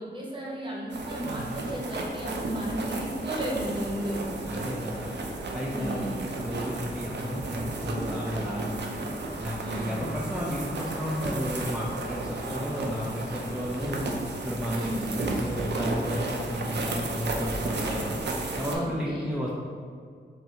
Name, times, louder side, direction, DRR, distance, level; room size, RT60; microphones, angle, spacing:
voice 1, 0.0-4.3 5.7-6.3 9.6-10.0 14.7-15.2 18.7-19.3, right 1 dB, 25° right, -4 dB, 0.9 m, -34 dB
sound 1, 0.9-18.7, right 2 dB, 65° right, 0.5 m, -33 dB
voice 2, 4.5-5.1 5.5-8.9 9.4-14.0 14.4-18.2 18.5-19.5, equal, 5° right, -5 dB, 0.4 m, -33 dB
4.3 x 2.6 x 3.4 m, 2.1 s
wide cardioid pair, 110°, 19 cm